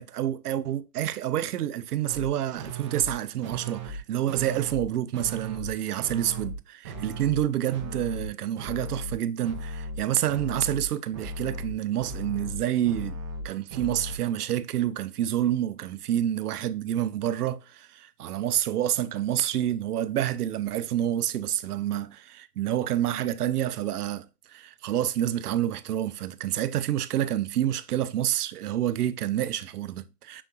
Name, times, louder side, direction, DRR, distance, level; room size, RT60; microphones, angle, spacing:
voice 1, 0.0-13.2 13.4-30.4, right 11 dB, 80° right, 0.5 m, -28 dB
sound 1, 2.1-2.3 2.6-3.1 3.4-4.0 4.3-4.9 5.1-5.7 6.0-6.6 6.8-7.4 7.7-8.3 8.6-9.2 9.4-10.0 10.3-14.2, right 1 dB, 20° right, 0.4 m, -36 dB
5.8 x 3.8 x 2.2 m
hypercardioid pair, 130°, 45 cm